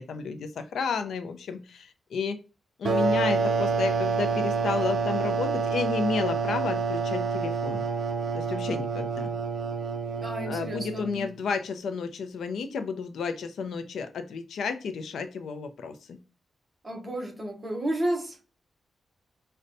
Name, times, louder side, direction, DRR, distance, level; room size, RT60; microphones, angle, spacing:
voice 1, 0.0-2.4 2.8-7.8 8.3-9.3 10.5-16.2, left 5 dB, 90° left, 9 dB, 0.4 m, -32 dB
sound 1, 2.8-11.2, right 4 dB, 55° right, 0.4 m, -28 dB
voice 2, 10.2-11.3 16.8-18.4, right 1 dB, 20° right, 0 dB, 0.8 m, -32 dB
5.2 x 2.1 x 2.6 m, 0.33 s
wide cardioid pair, 180°, 0 cm